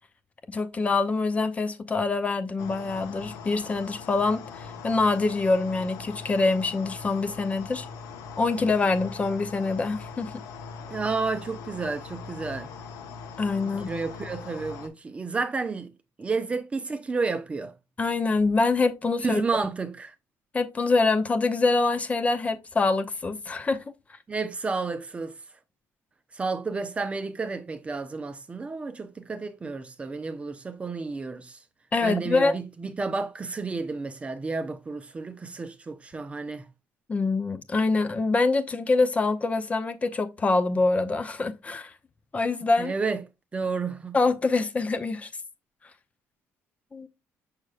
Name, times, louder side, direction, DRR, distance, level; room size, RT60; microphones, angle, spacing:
voice 1, 0.5-7.9 8.4-10.3 13.4-13.9 18.0-19.4 20.5-23.8 31.9-32.6 37.1-41.9 42.3-42.9 44.1-45.3 46.9-47.1, left 3 dB, 25° left, 0.6 m, -25 dB
sound 1, 2.6-14.9, left 5 dB, 85° left, 1.1 m, -41 dB
voice 2, 10.9-12.7 13.6-15.9 16.2-17.7 19.2-20.1 24.3-25.4 26.3-31.6 32.0-36.7 42.8-43.2 43.5-44.2, right 4 dB, 20° right, 0.7 m, -31 dB
6.5 x 6.2 x 2.4 m
cardioid pair, 135°, 6 cm